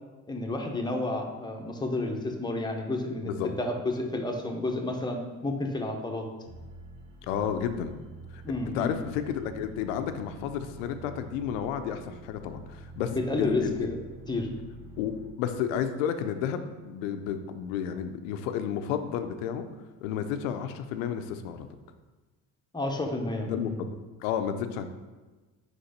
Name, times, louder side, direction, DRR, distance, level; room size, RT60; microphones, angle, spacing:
voice 1, 0.3-6.2 8.4-8.9 13.1-14.0 14.3-14.5 22.7-23.8, left 2 dB, 10° left, 2 dB, 1.0 m, -31 dB
sound 1, 6.4-15.3, right 2 dB, 80° right, 1.2 m, -47 dB
voice 2, 7.3-7.9 8.3-8.4 8.7-13.9 15.0-19.7 20.0-21.7 23.5-24.9, left 8 dB, 90° left, 9 dB, 0.6 m, -32 dB
5.2 x 4.1 x 5.1 m, 1.3 s
supercardioid pair, 85°, 38 cm